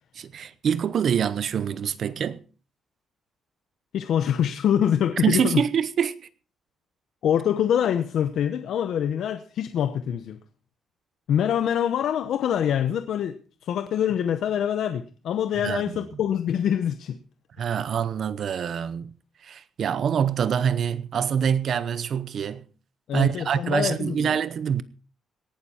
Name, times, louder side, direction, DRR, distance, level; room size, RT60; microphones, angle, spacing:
voice 1, 0.1-2.4 5.2-6.2 15.6-16.0 17.6-19.1 19.4-22.6 23.1-24.8, right 8 dB, 45° right, 0.8 m, -25 dB
voice 2, 3.9-5.6 7.2-10.4 11.3-17.2 23.1-24.4, left 9 dB, 65° left, 0.8 m, -25 dB
18.0 x 12.0 x 4.3 m
cardioid pair, 175°, 0 cm